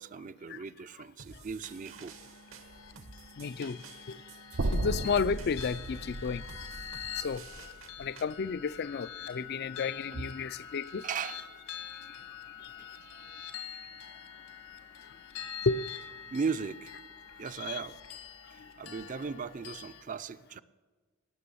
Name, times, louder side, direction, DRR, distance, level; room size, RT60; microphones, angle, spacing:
voice 1, 0.0-2.1 10.1-10.2 11.0-11.4 12.8-12.9 16.3-16.9 17.4-18.0 18.5-20.6, right 5 dB, 40° right, 0.4 m, -37 dB
sound 1, 1.2-8.2, right 5 dB, 70° right, 1.1 m, -52 dB
sound 2, 1.6-20.0, left 8 dB, 80° left, 1.7 m, -45 dB
voice 2, 3.4-3.8 4.1-4.2 4.7-6.5 7.2-7.4 8.0-11.0 15.7-15.9 17.6-17.8, left 5 dB, 50° left, 0.4 m, -32 dB
sound 3, 4.6-8.8, right 2 dB, 85° right, 0.7 m, -36 dB
18.5 x 6.8 x 7.0 m
head